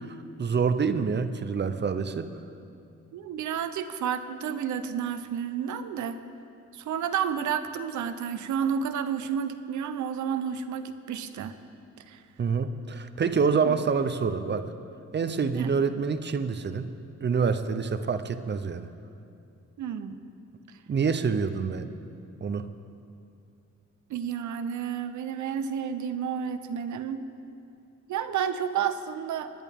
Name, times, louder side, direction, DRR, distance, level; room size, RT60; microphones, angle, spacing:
voice 1, 0.4-2.3 12.4-14.7 15.1-16.9 17.2-18.9 20.9-21.9 22.4-22.7, right 5 dB, 40° right, 10 dB, 0.7 m, -26 dB
voice 2, 3.1-6.2 6.7-11.5 12.1-12.2 13.6-13.7 15.5-15.7 19.8-20.2 24.1-27.2 28.1-29.5, right 8 dB, 90° right, 10 dB, 0.8 m, -31 dB
27.0 x 10.5 x 3.6 m, 2.6 s
cardioid pair, 110°, 29 cm